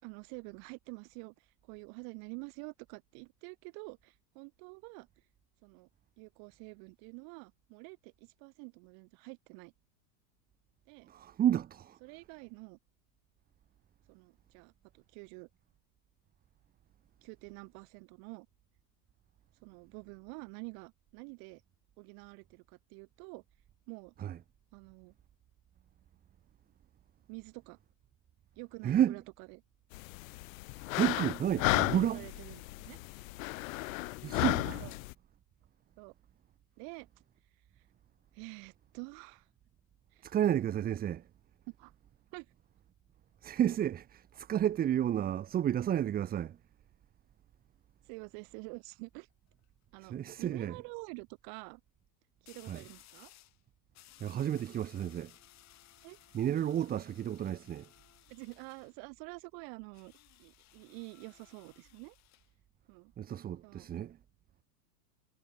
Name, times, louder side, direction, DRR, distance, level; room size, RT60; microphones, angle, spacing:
voice 1, 0.0-5.1 5.6-5.9 6.2-9.7 10.9-11.1 12.0-12.8 14.1-15.5 17.2-18.5 19.6-21.6 22.0-23.4 23.9-24.1 24.7-25.1 27.3-27.8 28.6-29.6 31.9-33.0 34.8-34.9 36.0-36.1 36.8-37.1 38.3-39.5 40.1-40.4 41.7-41.9 42.3-42.5 48.0-49.3 49.9-51.8 52.4-53.3 56.0-56.2 56.7-56.8 58.3-60.1 60.4-62.2 62.9-63.1 63.6-63.9, right 40 dB or more, 45° right, 3.9 m, -48 dB
voice 2, 11.1-12.0 24.2-24.4 28.8-29.2 31.0-32.3 34.2-34.9 40.2-41.2 43.4-46.6 50.0-50.7 52.7-52.8 54.2-55.3 56.3-57.9 63.2-64.2, right 10 dB, 20° right, 1.0 m, -31 dB
sound 1, 29.9-35.1, left 23 dB, 55° left, 0.9 m, -34 dB
sound 2, 49.3-49.6 52.5-53.6 53.9-58.9 59.9-62.5, left 15 dB, 35° left, 4.6 m, -60 dB
supercardioid pair, 145°, 49 cm